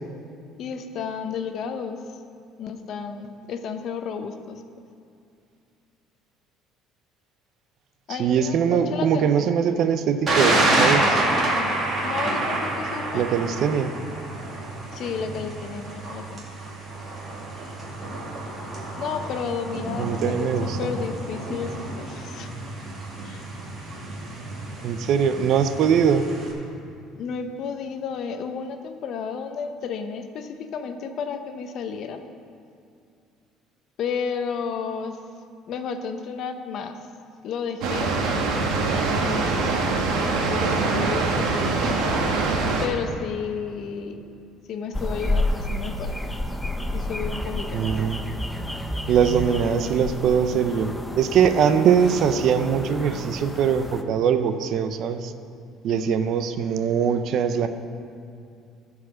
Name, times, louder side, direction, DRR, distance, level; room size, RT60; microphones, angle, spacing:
voice 1, 0.6-2.0 2.6-4.6 8.1-9.5 11.3-11.8 12.0-13.3 14.9-16.4 19.0-22.5 23.2-23.4 27.1-32.2 34.0-35.2 35.7-37.0 37.4-38.2 39.2-42.5 42.8-44.3 44.7-46.2 46.9-47.9 55.9-56.2, left 6 dB, 50° left, 7 dB, 0.7 m, -32 dB
voice 2, 8.2-11.2 13.1-13.9 20.0-20.8 24.8-26.2 47.7-48.3 49.1-55.3 55.8-57.7, right 7 dB, 50° right, 10 dB, 0.5 m, -22 dB
Thunder, 10.3-26.5, right 1 dB, 30° right, 2.0 m, -28 dB
Water, 37.8-42.9, right 3 dB, 65° right, 1.3 m, -23 dB
sound 1, 44.9-54.0, left 1 dB, 5° left, 0.5 m, -30 dB
14.5 x 4.9 x 6.2 m, 2.4 s
cardioid pair, 155°, 0 cm